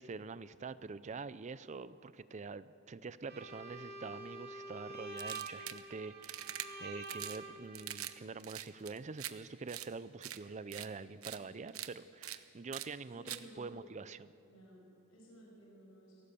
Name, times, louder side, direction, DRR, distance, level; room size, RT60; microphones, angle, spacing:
voice 1, 0.0-14.3, right 4 dB, 35° right, 15 dB, 0.5 m, -46 dB
Bowed string instrument, 3.3-8.0, right 2 dB, 50° right, 3.0 m, -47 dB
sound 1, 5.2-5.8 6.2-6.7 7.0-7.4 7.7-8.1 8.4-9.3 9.7-9.9 10.2-10.4 10.7-10.9 11.2-11.4 11.7-11.9 12.2-12.4 12.7-12.9 13.3-13.4, right 12 dB, 75° right, 1.0 m, -43 dB
voice 2, 13.1-13.9 14.4-16.2, equal, 75° left, -3 dB, 5.9 m, -57 dB
24.0 x 17.5 x 6.9 m, 2.8 s
head